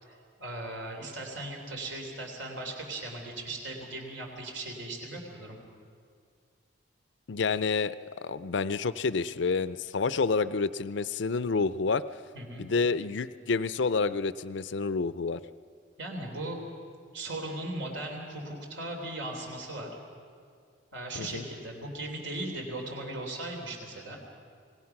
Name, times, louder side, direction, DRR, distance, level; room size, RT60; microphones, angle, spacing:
voice 1, 0.0-5.6 12.3-12.6 16.0-16.6 17.1-19.9 20.9-24.2, right 2 dB, 80° right, 2 dB, 3.6 m, -38 dB
voice 2, 7.3-12.0 12.6-15.4 21.2-21.4, left 4 dB, 70° left, 15 dB, 0.5 m, -29 dB
26.5 x 19.5 x 5.9 m, 2.1 s
head